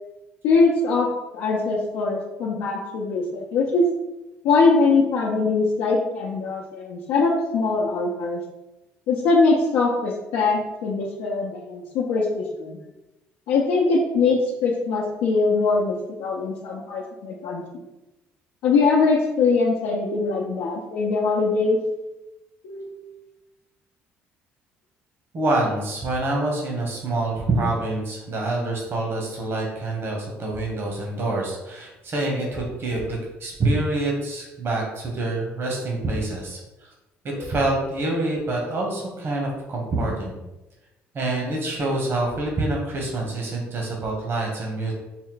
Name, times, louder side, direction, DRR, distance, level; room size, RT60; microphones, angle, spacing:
voice 1, 0.4-1.1 1.3-3.8 4.4-8.4 9.1-12.8 13.5-17.6 18.6-21.8 22.6-23.0 37.4-37.5, left 4 dB, 80° left, -4 dB, 0.6 m, -22 dB
voice 2, 25.3-36.9 37.2-40.4 41.1-44.9, right 2 dB, 50° right, -1 dB, 1.2 m, -26 dB
4.3 x 2.1 x 3.9 m, 0.99 s
supercardioid pair, 80°, 5 cm